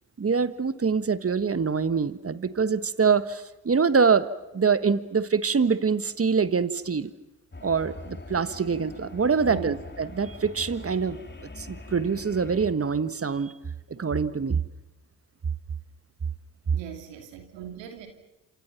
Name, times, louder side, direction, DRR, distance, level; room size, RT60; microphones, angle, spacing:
voice 1, 0.2-4.3 4.5-7.1 7.6-11.2 11.6-13.5 13.9-14.6, right 5 dB, 30° right, 13 dB, 1.5 m, -24 dB
sound 1, 7.5-12.7, left 3 dB, 25° left, 3.2 m, -42 dB
voice 2, 9.4-9.8 16.7-18.1, right 9 dB, 80° right, 5 dB, 2.7 m, -39 dB
28.0 x 26.5 x 5.9 m, 0.96 s
hypercardioid pair, 45°, 44 cm